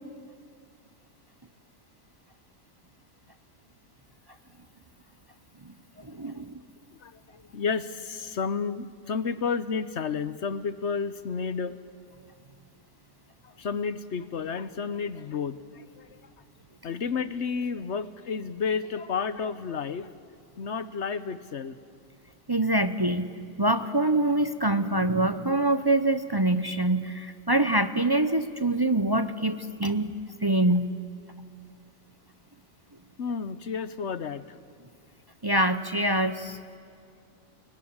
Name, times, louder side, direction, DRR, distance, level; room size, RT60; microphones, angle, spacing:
voice 1, 6.0-6.6 22.5-30.2 30.4-30.9 35.4-36.6, right 1 dB, 25° right, 11 dB, 0.5 m, -25 dB
voice 2, 7.0-11.8 13.4-16.2 16.8-20.1 20.6-21.8 33.2-34.6, left 5 dB, 50° left, 14 dB, 1.0 m, -31 dB
29.5 x 22.5 x 8.8 m, 2.3 s
omnidirectional pair, 1.7 m